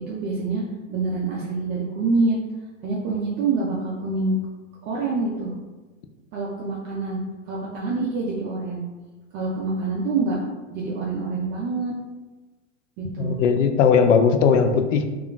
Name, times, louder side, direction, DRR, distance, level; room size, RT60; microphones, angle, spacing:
voice 1, 0.1-0.6 0.9-2.4 2.8-4.4 4.8-5.5 6.3-8.8 9.3-10.4 10.7-11.9 13.0-13.4, right 3 dB, 30° right, -4 dB, 0.4 m, -26 dB
voice 2, 13.2-15.1, left 6 dB, 75° left, 7 dB, 0.5 m, -18 dB
2.3 x 2.2 x 3.7 m, 1.2 s
hypercardioid pair, 110°, 38 cm